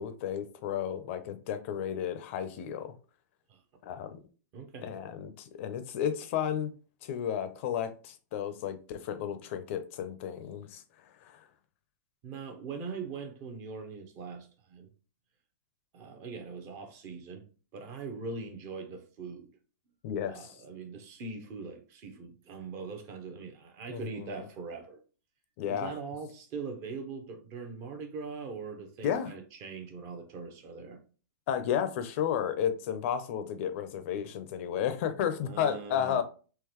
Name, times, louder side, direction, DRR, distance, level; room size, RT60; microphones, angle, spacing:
voice 1, 0.0-2.9 3.8-4.2 4.8-6.7 7.0-10.8 11.2-11.4 20.0-20.5 23.9-24.4 25.6-25.9 29.0-29.3 31.5-36.2, left 9 dB, 40° left, 0.5 m, -33 dB
voice 2, 4.5-5.0 12.2-14.9 15.9-17.4 17.7-19.5 20.3-25.0 25.7-31.0 35.4-36.2, right 4 dB, 30° right, 0.7 m, -41 dB
3.8 x 2.9 x 2.9 m
hypercardioid pair, 155°, 10 cm